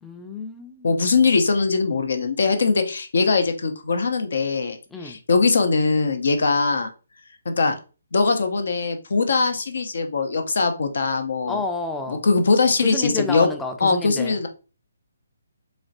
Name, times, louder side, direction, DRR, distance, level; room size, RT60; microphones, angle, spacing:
voice 1, 0.0-1.1 4.9-5.2 11.5-12.2 12.8-14.3, left 3 dB, 5° left, 4 dB, 0.4 m, -30 dB
voice 2, 0.8-4.8 5.0-6.9 7.5-7.8 8.1-11.6 12.1-13.5 13.8-14.5, left 4 dB, 60° left, 6 dB, 0.6 m, -21 dB
4.1 x 3.1 x 2.5 m, 0.34 s
figure-of-eight pair, 140°, 0 cm